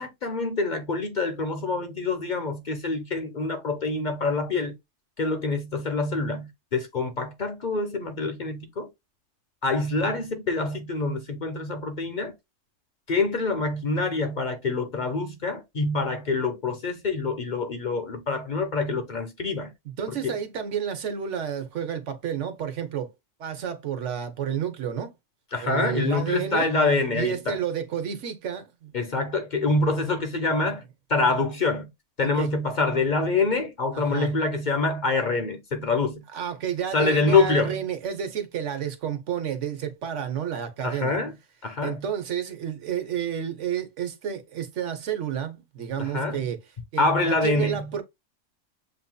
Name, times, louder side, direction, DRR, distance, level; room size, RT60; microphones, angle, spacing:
voice 1, 0.0-4.8 5.2-8.9 9.6-12.3 13.1-19.7 20.1-20.3 25.5-27.6 28.9-30.8 31.1-31.9 32.2-36.2 36.9-37.8 40.8-41.3 41.6-42.0 46.0-46.5 47.0-48.0, left 3 dB, 45° left, 0.8 m, -26 dB
voice 2, 20.0-23.1 23.4-25.1 25.6-26.7 27.1-28.9 32.2-32.5 33.9-34.3 36.3-41.2 41.8-46.6 46.9-48.0, right 8 dB, 75° right, 1.2 m, -30 dB
7.4 x 2.7 x 2.2 m
omnidirectional pair, 1.3 m